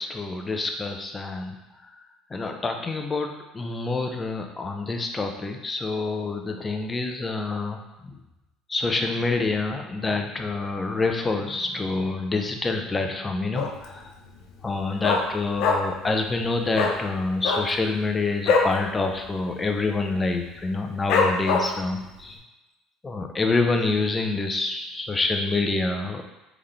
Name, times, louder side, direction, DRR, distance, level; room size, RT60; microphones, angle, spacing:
voice 1, 0.0-1.5 2.3-7.8 8.7-14.1 14.6-22.4 23.0-26.2, left 3 dB, 25° left, 4 dB, 0.6 m, -27 dB
Dog, 13.5-14.0 14.3-14.4 14.6-16.1 16.3-16.5 16.7-17.0 17.4-18.8 19.1-19.3 19.6-20.0 20.4-20.5 21.1-21.9 22.4-22.5, left 4 dB, 65° left, 0.7 m, -23 dB
3.6 x 3.6 x 3.3 m, 1.0 s
hypercardioid pair, 75°, 0 cm